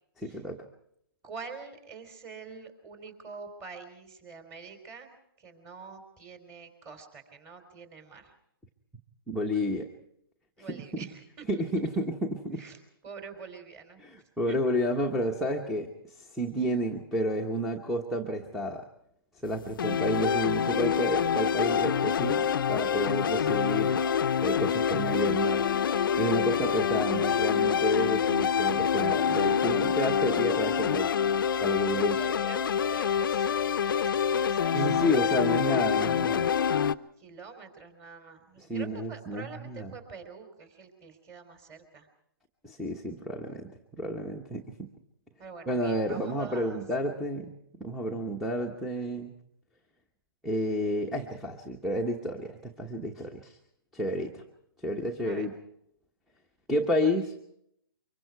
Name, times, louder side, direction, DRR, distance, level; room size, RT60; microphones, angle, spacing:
voice 1, 0.2-0.6 9.3-9.9 10.6-11.1 11.5-12.6 14.0-18.8 19.4-24.0 24.4-25.7 26.1-31.1 31.6-32.3 34.7-36.4 38.6-39.9 42.6-44.9 45.7-49.3 50.4-53.6 53.9-54.4 54.8-55.5 56.7-57.4, equal, ahead, 3 dB, 1.1 m, -31 dB
voice 2, 1.2-8.3 10.6-12.0 12.6-12.8 13.0-14.0 14.5-14.6 16.5-16.8 32.0-36.5 37.2-42.1 45.4-46.8 55.2-55.5, right 5 dB, 20° right, 7 dB, 3.4 m, -46 dB
sound 1, 19.8-36.9, left 7 dB, 60° left, 0.7 m, -26 dB
24.5 x 23.0 x 4.6 m, 0.74 s
hypercardioid pair, 150°, 13 cm